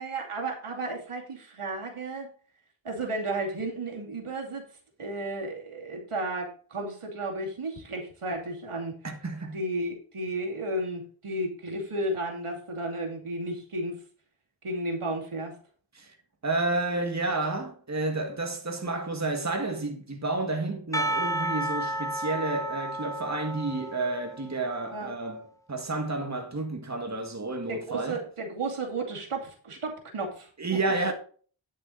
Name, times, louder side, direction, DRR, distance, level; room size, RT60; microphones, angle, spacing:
voice 1, 0.0-2.3 2.8-4.6 5.0-9.0 9.5-14.0 14.6-15.5 24.9-25.2 27.7-30.8, right 2 dB, 90° right, 2.7 m, -33 dB
voice 2, 9.0-9.6 16.0-16.1 16.4-25.4 25.7-28.2 30.6-31.1, right 2 dB, 35° right, 1.8 m, -30 dB
Percussion, 20.9-24.8, right 1 dB, 5° left, 0.9 m, -32 dB
9.4 x 7.5 x 4.0 m
wide cardioid pair, 80°, 49 cm